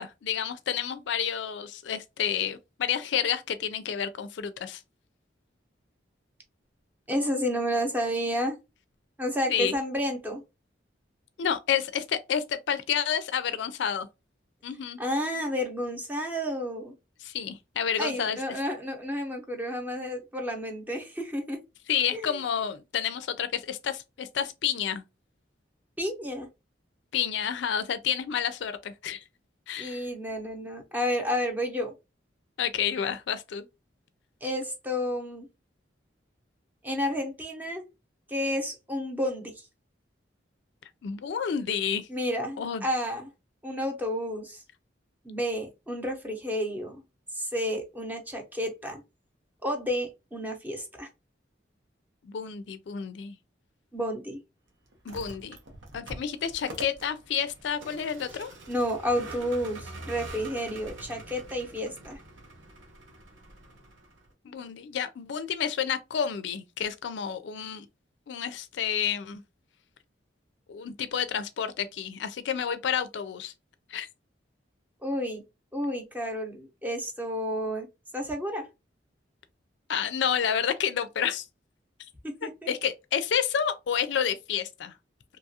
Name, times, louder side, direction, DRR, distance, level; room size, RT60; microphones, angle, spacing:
voice 1, 0.0-4.8 9.5-9.8 11.4-14.1 14.6-15.0 17.2-18.4 21.9-25.0 27.1-29.2 29.7-30.0 32.6-33.7 41.0-42.1 42.6-42.9 52.2-53.4 55.1-55.6 55.9-58.5 64.4-67.9 68.3-69.4 70.7-73.5 73.9-74.1 79.9-81.4 82.7-84.9, left 8 dB, 70° left, 0.4 m, -30 dB
voice 2, 7.1-8.6 9.2-10.4 15.0-16.9 18.0-21.6 22.1-22.4 26.0-26.5 29.8-31.9 34.4-35.5 36.8-37.9 38.3-39.7 42.1-43.3 43.6-44.6 45.2-47.0 47.3-49.0 49.6-51.1 53.9-54.4 58.7-62.2 75.0-75.4 75.7-77.9 78.1-78.7 82.2-82.5, equal, 10° right, 0.7 m, -31 dB
Vehicle, 54.9-64.3, right 2 dB, 85° right, 0.9 m, -45 dB
2.9 x 2.4 x 2.7 m
head